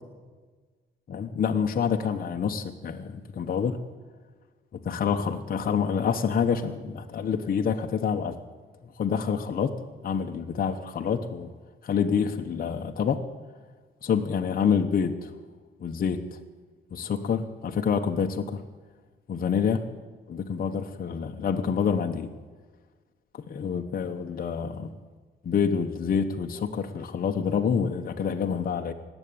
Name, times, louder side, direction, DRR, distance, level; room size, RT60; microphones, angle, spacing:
voice 1, 1.1-3.8 4.7-8.4 9.0-9.8 10.0-11.5 11.8-13.2 14.0-15.3 15.8-16.4 16.9-18.6 19.3-19.8 20.3-22.3 23.3-24.9 25.4-28.9, left 6 dB, 45° left, 4 dB, 1.1 m, -27 dB
18.5 x 8.1 x 8.7 m, 1.4 s
cardioid pair, 90°, 20 cm